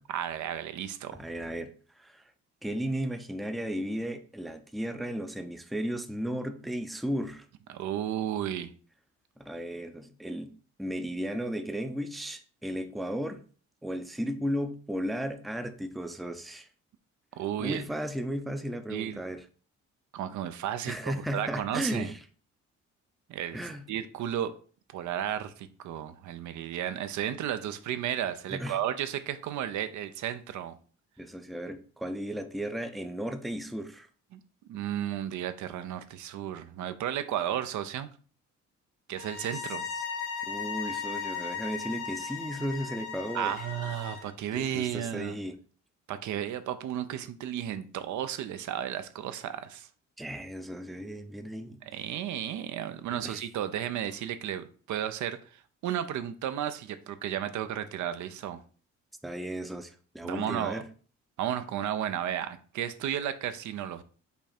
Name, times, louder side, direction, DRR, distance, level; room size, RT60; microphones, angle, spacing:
voice 1, 0.1-1.2 7.7-8.7 17.4-17.9 18.9-19.2 20.1-22.1 23.3-23.6 23.9-24.5 24.9-30.8 34.3-34.4 34.7-38.1 39.1-39.8 43.3-45.3 46.1-49.9 51.9-58.6 60.2-60.8 61.4-64.0, right 10 dB, 70° right, 11 dB, 0.6 m, -33 dB
voice 2, 1.2-2.2 2.6-7.5 9.4-10.5 10.8-13.4 13.8-16.7 17.6-19.4 20.9-22.2 23.5-23.9 28.5-28.8 31.2-34.1 39.5-39.6 40.5-43.7 44.5-45.6 50.2-51.8 53.1-53.4 59.2-60.9, equal, ahead, 8 dB, 0.5 m, -35 dB
sound 1, 39.2-44.3, left 6 dB, 80° left, 1.1 m, -37 dB
5.2 x 2.4 x 4.3 m, 0.41 s
cardioid pair, 90°, 30 cm